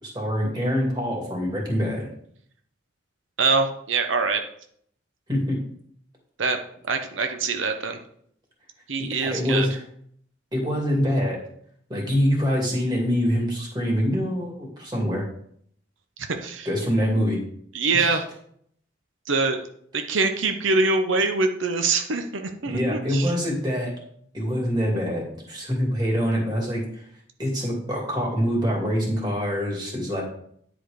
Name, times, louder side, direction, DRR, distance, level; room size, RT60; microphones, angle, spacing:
voice 1, 0.0-2.1 5.3-5.6 9.2-9.8 10.5-11.4 11.9-15.2 16.6-17.4 17.9-18.2 22.7-23.9 24.3-26.8 27.4-30.2, equal, 20° right, -2 dB, 2.6 m, -25 dB
voice 2, 3.4-4.4 6.4-6.6 6.9-8.0 8.9-9.7 16.3-16.7 17.7-18.2 19.3-19.7 19.9-23.3, right 4 dB, 90° right, 6 dB, 0.8 m, -24 dB
10.0 x 4.9 x 5.1 m, 0.66 s
head